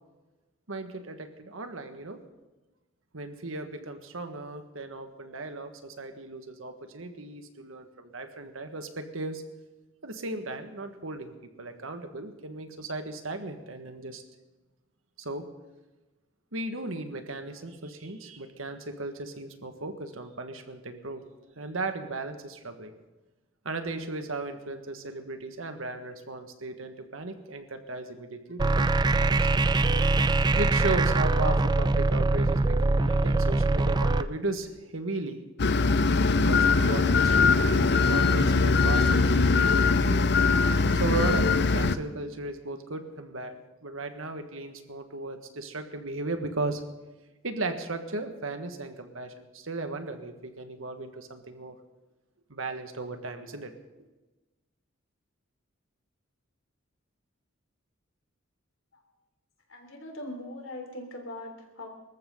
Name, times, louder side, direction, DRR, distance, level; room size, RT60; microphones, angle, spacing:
voice 1, 0.7-2.2 3.1-9.4 10.0-14.2 15.2-15.4 16.5-21.2 21.6-22.9 23.7-29.3 30.5-35.4 36.4-40.3 40.9-46.8 47.4-51.8 52.5-53.7, right 2 dB, 80° right, 7 dB, 1.7 m, -36 dB
sound 1, 28.6-34.2, right 2 dB, 20° right, 0.4 m, -23 dB
sound 2, 35.6-42.0, left 4 dB, 55° left, 0.7 m, -22 dB
voice 2, 59.7-61.9, left 1 dB, 75° left, 3 dB, 3.4 m, -40 dB
25.0 x 14.0 x 3.9 m, 1.1 s
head